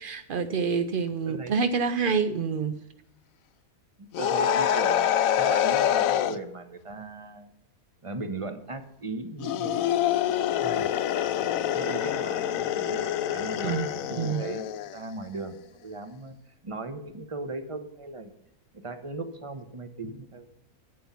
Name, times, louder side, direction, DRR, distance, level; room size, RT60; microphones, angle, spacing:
voice 1, 0.0-2.8 13.6-14.4, right 5 dB, 70° right, 11 dB, 0.5 m, -27 dB
voice 2, 1.3-1.6 4.0-7.5 8.0-9.8 10.6-10.9 11.4-16.4 16.6-18.3 18.7-20.5, right 3 dB, 25° right, 9 dB, 1.0 m, -38 dB
sound 1, 4.1-6.4 9.4-15.0, left 10 dB, 70° left, 1.0 m, -26 dB
11.0 x 8.7 x 5.7 m, 0.80 s
omnidirectional pair, 1.6 m